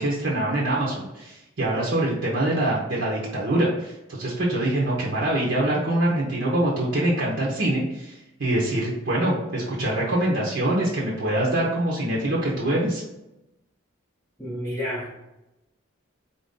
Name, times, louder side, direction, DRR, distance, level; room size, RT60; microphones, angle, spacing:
voice 1, 0.0-13.0, right 1 dB, 55° right, -5 dB, 0.8 m, -24 dB
voice 2, 14.4-15.2, equal, 15° left, -7 dB, 1.0 m, -30 dB
4.2 x 2.6 x 3.7 m, 0.93 s
head